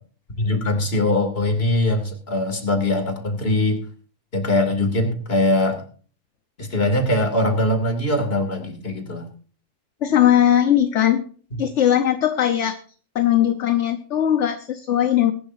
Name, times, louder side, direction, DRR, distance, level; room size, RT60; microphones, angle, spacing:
voice 1, 0.4-3.8 4.3-5.8 6.6-9.2, left 1 dB, 50° left, 5 dB, 2.9 m, -21 dB
voice 2, 10.0-11.3 11.6-12.8 13.1-15.3, left 10 dB, 65° left, 7 dB, 1.3 m, -19 dB
22.0 x 11.5 x 2.7 m, 0.42 s
omnidirectional pair, 1.4 m